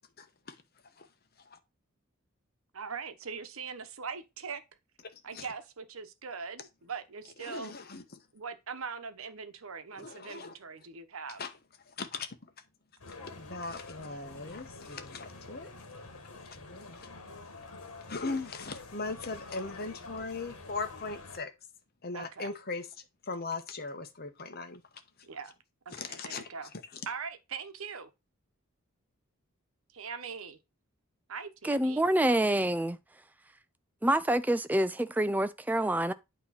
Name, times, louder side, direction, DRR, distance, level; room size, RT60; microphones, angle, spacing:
voice 1, 0.2-0.5 1.0-1.1 1.5-1.6 5.0-5.5 7.4-8.0 9.9-10.6 11.4-11.5 12.0-12.3 13.4-15.7 16.5-17.0 18.1-21.5 22.0-22.9 23.3-24.8 25.9-26.5 26.9-27.0, left 3 dB, 45° left, 1.0 m, -39 dB
voice 2, 2.7-4.6 5.2-7.7 8.3-11.4 22.1-22.5 25.2-25.5 25.9-26.7 27.1-28.1 29.9-30.6 31.3-32.0, right 5 dB, 75° right, 1.0 m, -41 dB
sound 1, 13.0-21.4, left 3 dB, 85° left, 1.4 m, -47 dB
voice 3, 31.6-33.0 34.0-36.1, right 1 dB, 10° right, 0.4 m, -27 dB
8.7 x 3.1 x 5.7 m
head